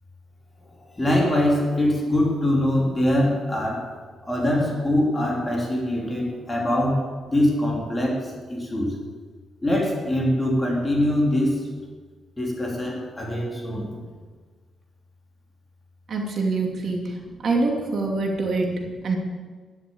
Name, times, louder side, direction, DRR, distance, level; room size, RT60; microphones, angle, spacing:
voice 1, 0.8-8.9 9.6-11.7 12.4-14.0, left 1 dB, 15° left, -2 dB, 3.3 m, -23 dB
voice 2, 16.1-17.2 17.4-19.1, right 3 dB, 45° right, 1 dB, 2.5 m, -25 dB
12.0 x 11.5 x 8.6 m, 1.4 s
cardioid pair, 160°, 0 cm